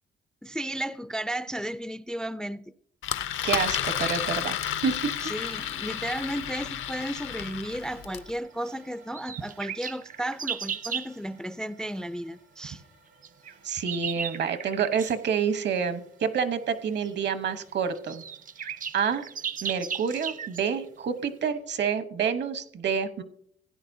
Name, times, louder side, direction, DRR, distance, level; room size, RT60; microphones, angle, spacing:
voice 1, 0.4-2.6 5.2-12.8, right 1 dB, 5° left, 0.3 m, -34 dB
Engine, 3.0-8.3, left 11 dB, 80° left, 0.7 m, -31 dB
voice 2, 3.4-5.2 13.6-18.2 18.9-19.2 19.6-23.2, right 6 dB, 60° right, 1.0 m, -28 dB
sound 1, 3.5-21.7, right 3 dB, 85° right, 4.6 m, -56 dB
sound 2, 9.1-11.1 13.2-15.2 17.0-17.1 17.7-17.8 17.9-20.7, right 7 dB, 40° right, 0.6 m, -35 dB
16.0 x 9.7 x 2.7 m
cardioid pair, 90°, 20 cm